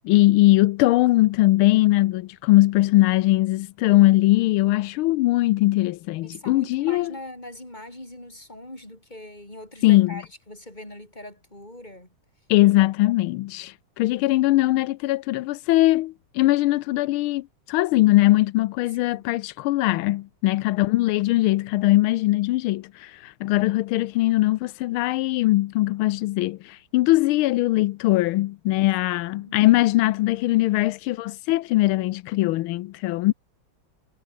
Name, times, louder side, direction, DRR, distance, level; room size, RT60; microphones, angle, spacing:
voice 1, 0.0-7.1 9.8-10.1 12.5-33.3, left 17 dB, 90° left, 1.5 m, -21 dB
voice 2, 6.2-12.1 18.9-19.2 29.3-29.6, left 1 dB, 20° left, 7.2 m, -41 dB
omnidirectional pair, 2.2 m